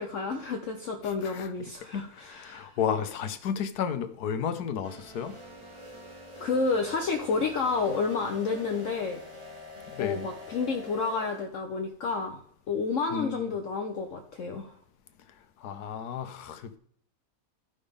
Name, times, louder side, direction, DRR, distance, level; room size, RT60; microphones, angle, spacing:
voice 1, 0.0-2.7 6.4-9.2 10.0-12.4 12.7-14.7, left 4 dB, 60° left, 1.0 m, -30 dB
voice 2, 1.1-1.5 2.1-5.3 9.9-10.3 13.1-13.5 15.6-16.8, left 7 dB, 85° left, 1.3 m, -33 dB
sound 1, 4.8-11.1, right 1 dB, 20° right, 1.0 m, -49 dB
sound 2, 5.2-11.4, left 3 dB, 40° right, 2.9 m, -47 dB
13.0 x 5.4 x 3.5 m
omnidirectional pair, 1.6 m